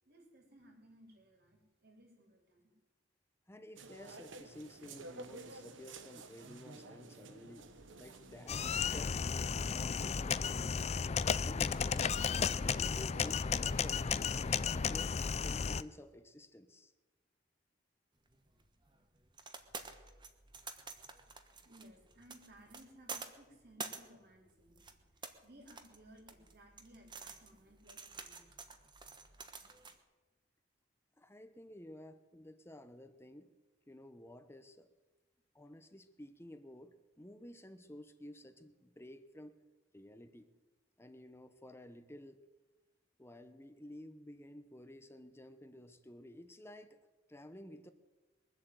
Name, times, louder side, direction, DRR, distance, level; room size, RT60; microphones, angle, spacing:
voice 1, 0.0-2.7 21.6-24.9 25.4-28.5, right 1 dB, 55° right, 1 dB, 3.9 m, -60 dB
voice 2, 3.5-7.7 8.0-11.0 11.4-14.0 14.3-16.9 31.2-33.5 33.9-34.9 35.5-39.5 39.9-40.5 41.0-42.4 43.2-47.0 47.3-47.9, left 1 dB, 15° left, 11 dB, 0.9 m, -53 dB
sound 1, 3.7-9.2, right 3 dB, 90° right, 1.2 m, -52 dB
sound 2, 8.5-15.8, left 6 dB, 35° left, 0.4 m, -34 dB
sound 3, 18.3-30.0, right 4 dB, 25° right, 1.2 m, -50 dB
22.0 x 7.9 x 8.0 m, 1.2 s
head